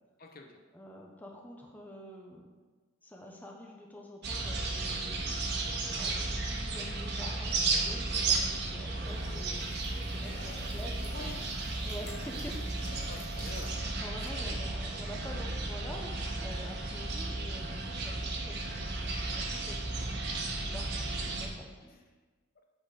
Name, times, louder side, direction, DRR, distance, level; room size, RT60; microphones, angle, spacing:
voice 1, 0.7-2.5 3.0-5.5 6.0-11.1 11.8-12.6 14.0-21.9, left 1 dB, 10° left, 0 dB, 0.7 m, -47 dB
sound 1, 4.2-21.5, right 3 dB, 55° right, 1.4 m, -34 dB
sound 2, 8.9-14.6, left 1 dB, 75° left, 2.7 m, -52 dB
voice 2, 10.4-11.4 12.6-12.7 13.1-13.8 14.4-14.6, left 2 dB, 45° left, 3 dB, 0.9 m, -47 dB
8.4 x 4.3 x 6.5 m, 1.4 s
head